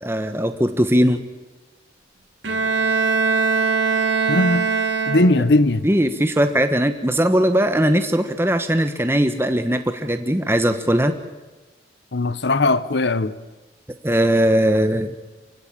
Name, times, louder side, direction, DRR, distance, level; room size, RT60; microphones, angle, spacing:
voice 1, 0.0-1.2 5.8-11.1 14.0-15.1, equal, 10° right, 1.1 m, -19 dB
Bowed string instrument, 2.4-5.7, right 4 dB, 75° right, 2.8 m, -21 dB
voice 2, 4.3-4.7 5.1-5.9 12.1-13.3, left 2 dB, 60° left, 0.8 m, -18 dB
27.5 x 16.0 x 8.8 m
head